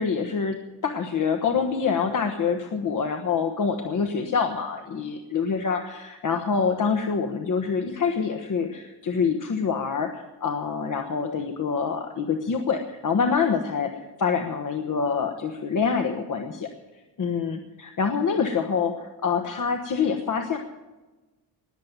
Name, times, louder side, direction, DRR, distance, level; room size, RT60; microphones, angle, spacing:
voice 1, 0.0-16.7 17.2-20.6, left 6 dB, 50° left, 5 dB, 1.3 m, -26 dB
20.0 x 7.7 x 9.5 m, 1.2 s
wide cardioid pair, 155°, 40 cm